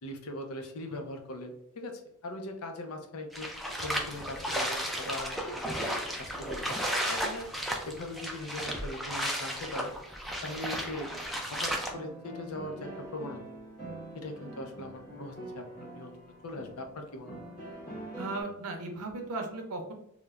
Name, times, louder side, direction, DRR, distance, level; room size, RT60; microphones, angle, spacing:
voice 1, 0.0-3.5 3.8-5.4 5.6-5.8 6.2-7.5 7.8-9.9 10.4-11.1 11.5-13.4 14.1-17.4, left 1 dB, 70° left, 4 dB, 0.5 m, -40 dB
sound 1, 3.3-11.9, equal, ahead, 0.3 m, -34 dB
sound 2, 10.4-18.4, right 1 dB, 45° left, 1.4 m, -45 dB
voice 2, 18.2-19.9, right 2 dB, 75° right, 3 dB, 0.6 m, -36 dB
3.1 x 2.1 x 2.3 m, 0.76 s
head